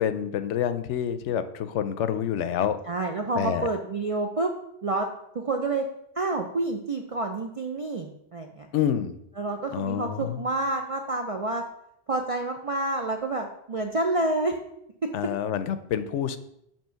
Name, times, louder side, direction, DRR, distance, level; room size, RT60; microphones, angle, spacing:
voice 1, 0.0-2.8 3.3-3.7 8.7-9.2 9.7-10.4 15.1-16.4, left 9 dB, 80° left, 12 dB, 0.9 m, -27 dB
voice 2, 2.9-4.5 4.8-5.1 5.3-5.9 6.2-8.7 9.4-11.6 12.1-14.6 15.0-15.1, right 2 dB, 55° right, 3 dB, 0.3 m, -28 dB
7.4 x 2.9 x 5.7 m, 0.76 s
omnidirectional pair, 1.2 m